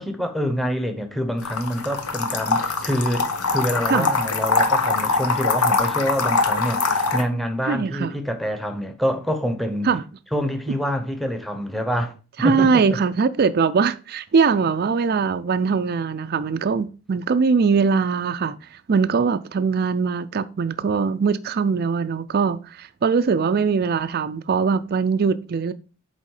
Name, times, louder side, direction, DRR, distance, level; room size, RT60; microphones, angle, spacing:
voice 1, 0.0-9.9 10.3-12.8, equal, ahead, 0.9 m, -26 dB
sound 1, 1.4-7.2, left 4 dB, 90° left, 1.1 m, -23 dB
voice 2, 7.6-8.1 9.8-10.0 12.4-18.6 18.9-25.7, right 5 dB, 45° right, 0.4 m, -21 dB
8.2 x 3.7 x 4.8 m
head